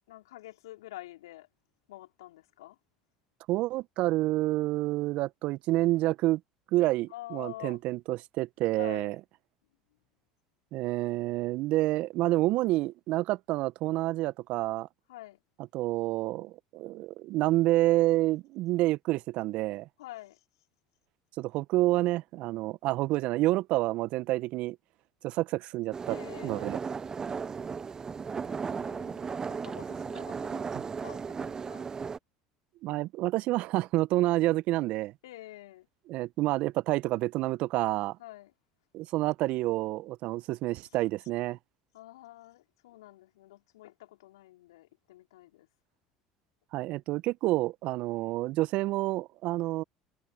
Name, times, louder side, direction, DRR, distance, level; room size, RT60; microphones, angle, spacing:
voice 1, 0.1-1.5 1.9-2.8 7.1-7.8 8.8-9.1 15.1-15.4 20.0-20.4 26.1-26.8 28.4-30.6 31.0-31.9 35.2-35.9 38.2-38.5 41.9-45.7, left 16 dB, 75° left, 4.9 m, -47 dB
voice 2, 3.5-6.4 6.7-9.2 10.7-14.9 15.7-19.9 21.4-24.8 25.2-26.2 26.4-26.8 32.8-35.1 36.1-38.2 38.9-41.6 46.7-49.8, right 17 dB, 60° right, 1.5 m, -28 dB
sound 1, 25.9-32.2, right 5 dB, 25° right, 0.8 m, -36 dB
hypercardioid pair, 70°, 2 cm